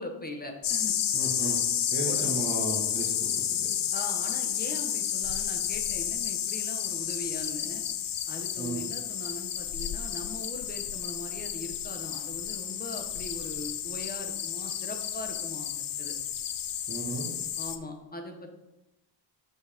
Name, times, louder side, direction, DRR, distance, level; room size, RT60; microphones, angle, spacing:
voice 1, 0.0-1.0 2.0-2.4 3.9-7.8 8.3-16.1 17.6-18.6, left 2 dB, 20° left, 3 dB, 1.0 m, -41 dB
sound 1, 0.6-17.8, left 9 dB, 45° left, 0.5 m, -31 dB
voice 2, 1.1-1.6 1.9-3.7 8.6-8.8 16.9-17.3, right 3 dB, 20° right, -2 dB, 1.5 m, -35 dB
7.6 x 6.3 x 3.6 m, 0.94 s
cardioid pair, 125°, 48 cm